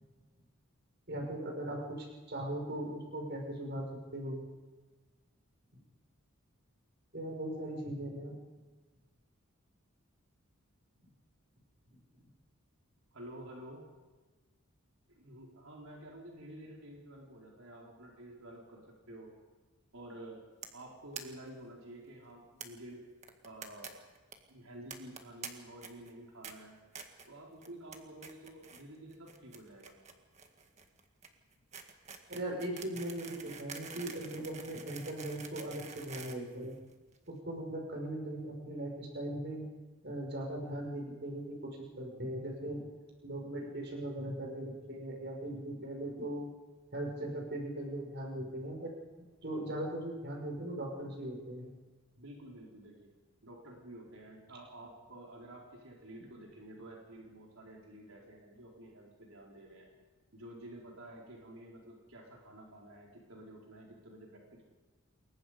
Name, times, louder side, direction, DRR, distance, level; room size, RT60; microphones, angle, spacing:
voice 1, 1.1-3.8 4.1-4.4 5.7-5.8 7.1-8.3 32.3-36.8 37.3-39.6 40.0-42.8 43.2-46.5 46.9-48.9 49.2-51.7, right 1 dB, 50° right, 1 dB, 5.6 m, -39 dB
voice 2, 13.1-13.8 15.1-19.3 19.9-20.4 20.7-23.0 23.4-24.0 24.5-26.8 27.3-30.0 52.2-53.1 53.4-59.9 60.3-64.7, right 1 dB, 75° right, -2 dB, 4.4 m, -50 dB
sound 1, 20.6-20.8 21.1-21.2 21.5-21.6 21.8-21.9 22.6-22.7 23.2-23.9 24.1-24.3 24.9-25.5 25.8-26.1 26.4-26.5 26.9-27.3 27.6-28.0 28.2-28.8 29.1-37.2, right 6 dB, 30° right, 1.8 m, -47 dB
28.5 x 22.0 x 5.2 m, 1.3 s
head